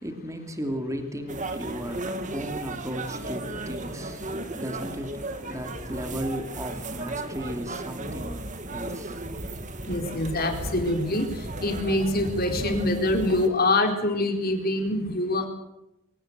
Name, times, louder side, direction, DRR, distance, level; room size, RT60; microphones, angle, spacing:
voice 1, 0.0-8.4 8.7-9.2, equal, 15° right, 5 dB, 2.9 m, -35 dB
sound 1, 1.3-13.5, right 2 dB, 35° right, 2.0 m, -35 dB
voice 2, 9.9-15.5, left 2 dB, 45° left, 4 dB, 4.3 m, -25 dB
24.5 x 17.0 x 9.2 m, 0.89 s
head